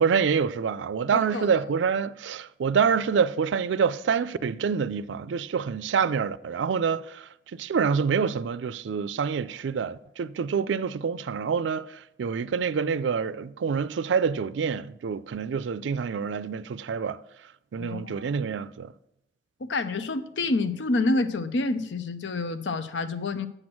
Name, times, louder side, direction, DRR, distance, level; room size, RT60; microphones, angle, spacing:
voice 1, 0.0-7.3 7.6-17.2 17.7-18.9, right 6 dB, 90° right, 0.4 m, -26 dB
voice 2, 1.1-1.5 17.8-18.5 19.6-23.5, left 2 dB, 85° left, 0.6 m, -28 dB
7.7 x 6.1 x 6.2 m
head